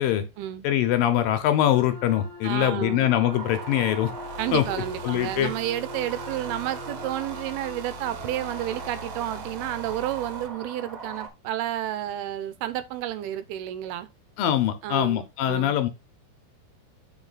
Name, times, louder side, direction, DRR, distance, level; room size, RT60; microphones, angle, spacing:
voice 1, 0.6-4.1 4.5-4.7 5.0-5.5 14.4-15.9, left 11 dB, 75° left, 2.3 m, -23 dB
sound 1, 1.7-8.9, left 3 dB, 45° left, 1.2 m, -43 dB
voice 2, 2.4-3.1 4.4-14.1 14.8-15.8, right 12 dB, 85° right, 2.7 m, -31 dB
sound 2, 3.1-11.3, right 4 dB, 20° right, 2.6 m, -40 dB
sound 3, 4.0-10.5, right 4 dB, 70° right, 2.4 m, -41 dB
8.2 x 5.3 x 4.0 m
omnidirectional pair, 4.5 m